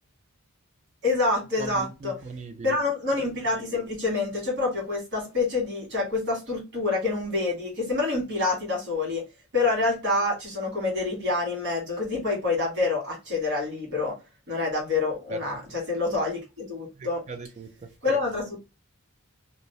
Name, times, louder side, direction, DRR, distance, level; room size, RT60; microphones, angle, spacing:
voice 1, 1.0-2.1 2.6-9.2 9.5-14.1 14.5-17.2 18.0-18.6, left 3 dB, 55° right, 1.5 m, -27 dB
voice 2, 1.6-2.8 15.3-15.4 17.0-18.2, right 2 dB, 30° right, 0.4 m, -39 dB
2.7 x 2.0 x 2.8 m
head